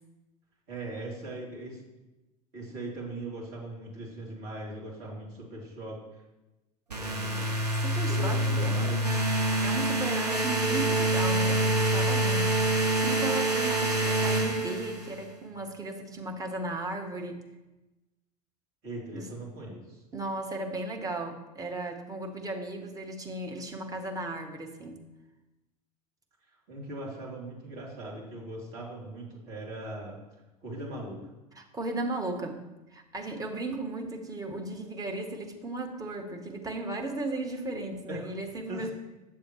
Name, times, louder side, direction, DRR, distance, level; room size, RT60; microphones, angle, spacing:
voice 1, 0.7-1.8 2.5-6.2 6.9-7.6 8.1-9.3 18.8-20.0 26.7-30.2 30.6-31.2 38.1-38.3 38.7-38.9, right 1 dB, 45° right, -3 dB, 3.0 m, -39 dB
sound 1, 6.9-15.2, right 1 dB, 80° right, 0.9 m, -26 dB
voice 2, 7.8-9.0 9.6-17.4 19.1-19.3 20.1-25.0 31.6-32.6 32.9-38.9, right 2 dB, 15° right, 4 dB, 1.1 m, -35 dB
9.4 x 6.9 x 3.1 m, 1.0 s
figure-of-eight pair, 80°, 20 cm